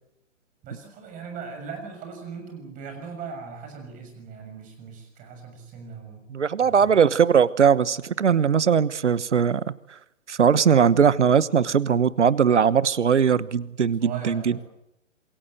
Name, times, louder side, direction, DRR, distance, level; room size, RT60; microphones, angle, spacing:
voice 1, 0.6-6.2 6.6-6.9 14.0-14.6, right 5 dB, 20° right, 5 dB, 6.5 m, -39 dB
voice 2, 6.3-9.6 10.3-14.4, right 7 dB, 65° right, 18 dB, 1.2 m, -20 dB
27.0 x 22.0 x 7.8 m, 0.83 s
figure-of-eight pair, 130°, 38 cm